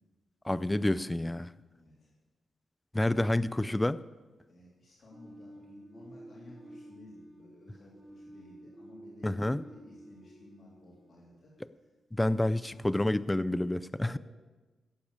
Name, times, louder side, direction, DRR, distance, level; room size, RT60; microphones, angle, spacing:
voice 1, 0.4-1.5 2.9-4.0 9.2-9.6 12.2-14.2, left 1 dB, 10° left, 16 dB, 0.3 m, -28 dB
voice 2, 1.7-2.1 3.4-3.6 4.5-11.5 11.8-12.3 12.7-13.3 14.0-14.2, left 1 dB, 50° left, -4 dB, 3.4 m, -55 dB
sound 1, 5.1-11.9, right 1 dB, 20° right, 5.8 m, -52 dB
17.0 x 8.5 x 6.6 m, 1.2 s
cardioid pair, 100°, 0 cm